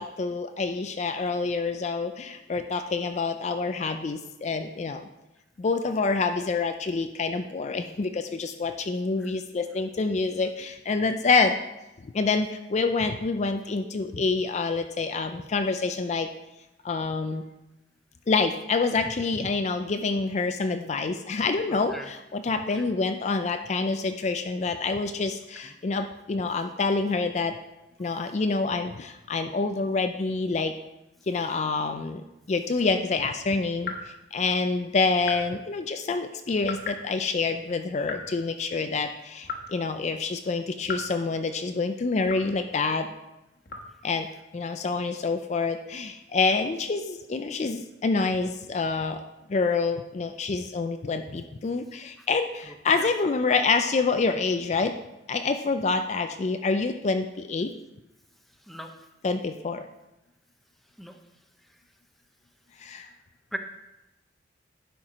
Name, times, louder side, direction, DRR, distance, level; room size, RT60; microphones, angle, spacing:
voice 1, 0.0-5.0 5.6-11.5 12.1-16.3 16.8-17.4 18.3-27.6 28.0-30.7 31.3-43.1 44.0-44.3 44.5-49.2 49.5-54.9 55.3-57.7 59.2-59.9 62.8-63.1, left 4 dB, 40° left, 7 dB, 0.4 m, -27 dB
voice 2, 21.9-22.1 22.7-22.8 53.0-53.1 58.7-58.9 61.0-61.1 63.5-63.6, equal, ahead, 4 dB, 0.6 m, -36 dB
sound 1, 33.8-34.0 35.2-35.6 36.6-37.0 38.0-38.3 39.4-39.8 40.8-41.1 42.2-42.6 43.7-43.9, left 4 dB, 55° left, 1.2 m, -36 dB
11.5 x 4.5 x 5.0 m, 0.97 s
head